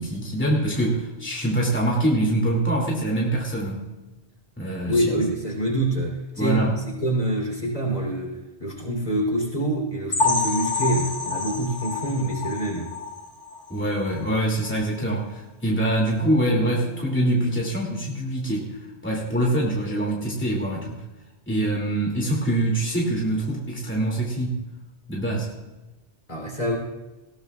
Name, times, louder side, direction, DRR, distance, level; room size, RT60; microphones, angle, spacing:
voice 1, 0.0-3.9 4.6-5.1 6.4-6.8 13.7-21.0 21.5-24.7 25.1-25.5, right 1 dB, 10° left, -2 dB, 2.5 m, -24 dB
voice 2, 4.9-12.9 26.3-26.8, right 1 dB, 35° left, 0 dB, 3.6 m, -26 dB
sound 1, 10.1-13.7 14.1-14.3 14.7-14.8 15.2-15.3, left 4 dB, 90° left, 2.5 m, -27 dB
sound 2, 16.2-19.6, left 2 dB, 55° left, 1.7 m, -40 dB
19.5 x 17.5 x 2.4 m, 1.1 s
omnidirectional pair, 1.2 m